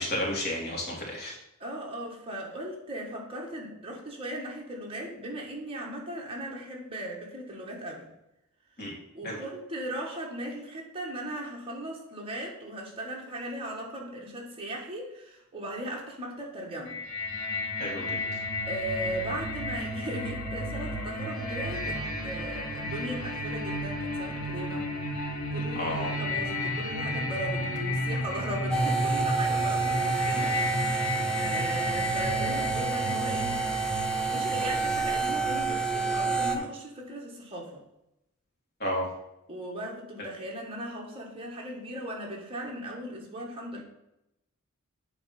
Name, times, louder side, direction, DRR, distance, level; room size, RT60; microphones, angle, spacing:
voice 1, 0.0-1.4 8.8-9.0 9.2-9.4 17.8-18.0 25.8-26.1 38.8-39.1, left 1 dB, 45° left, -2 dB, 1.9 m, -31 dB
voice 2, 1.6-8.1 9.1-17.0 18.7-24.9 25.5-33.6 34.3-37.8 39.5-43.8, right 1 dB, 25° right, -1 dB, 1.6 m, -37 dB
sound 1, 16.9-36.6, left 1 dB, 75° left, 1.9 m, -33 dB
sound 2, 28.7-36.6, right 4 dB, 5° left, 0.6 m, -28 dB
8.5 x 3.3 x 5.8 m, 0.87 s
head